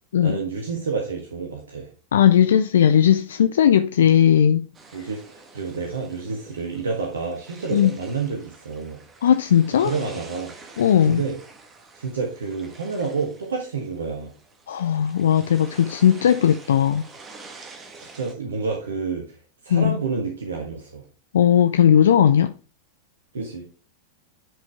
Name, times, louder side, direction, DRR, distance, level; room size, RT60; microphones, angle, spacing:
voice 1, 0.2-1.9 4.9-9.0 9.8-10.5 11.0-11.4 11.9-14.3 18.0-19.4 19.6-21.0 23.3-23.6, right 4 dB, 70° right, 1.5 m, -29 dB
voice 2, 2.1-4.7 7.7-7.9 9.2-9.9 10.8-11.2 14.7-17.0 19.7-20.0 21.3-22.5, left 9 dB, 65° left, 0.4 m, -17 dB
sound 1, 4.7-18.3, right 4 dB, 20° right, 1.5 m, -47 dB
10.0 x 5.1 x 3.4 m
figure-of-eight pair, 90°, 0 cm